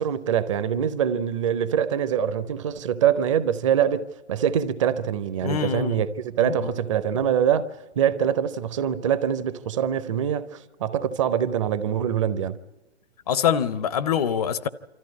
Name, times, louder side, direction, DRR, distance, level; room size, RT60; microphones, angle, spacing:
voice 1, 0.0-4.0 4.3-7.7 7.9-12.6, right 9 dB, 30° right, 0.6 m, -24 dB
voice 2, 5.4-6.0 6.4-6.7 13.3-14.7, left 8 dB, 35° left, 0.6 m, -24 dB
25.5 x 14.0 x 9.6 m
figure-of-eight pair, 125°, 33 cm